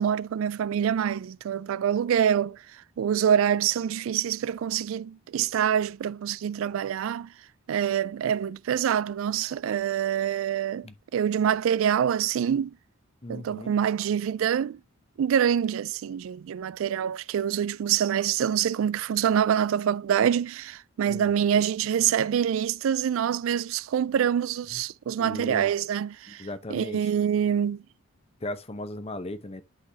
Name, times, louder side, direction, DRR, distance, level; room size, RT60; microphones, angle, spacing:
voice 1, 0.0-2.6 3.0-7.3 7.7-12.7 13.3-14.8 15.2-27.8, right 9 dB, 70° right, 0.3 m, -26 dB
voice 2, 13.2-13.7 21.1-21.3 24.7-24.8 25.2-25.7 26.3-27.1 28.4-29.6, left 1 dB, 30° left, 0.7 m, -37 dB
11.5 x 3.9 x 2.7 m
head